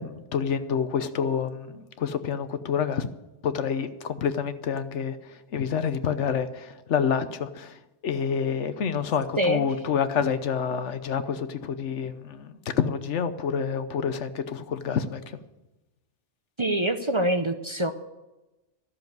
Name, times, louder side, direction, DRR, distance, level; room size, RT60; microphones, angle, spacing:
voice 1, 0.0-3.1 3.4-15.4, left 7 dB, 80° left, 11 dB, 1.2 m, -28 dB
voice 2, 16.6-17.9, right 1 dB, 30° right, 7 dB, 0.7 m, -25 dB
13.5 x 7.1 x 9.4 m, 1.0 s
omnidirectional pair, 1.2 m